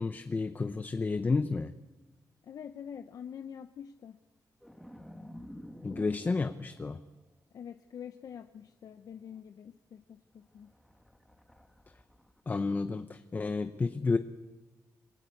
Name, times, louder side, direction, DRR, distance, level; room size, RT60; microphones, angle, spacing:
voice 1, 0.0-1.7 5.8-7.0 12.5-14.2, left 4 dB, 30° left, 9 dB, 0.8 m, -31 dB
voice 2, 2.4-4.2 7.5-10.7, left 8 dB, 65° left, 9 dB, 0.7 m, -46 dB
sound 1, 4.6-7.0 8.4-8.6 9.1-9.3 10.4-12.4, equal, ahead, 2.0 m, -50 dB
27.0 x 18.5 x 8.5 m, 1.2 s
cardioid pair, 110°, 7 cm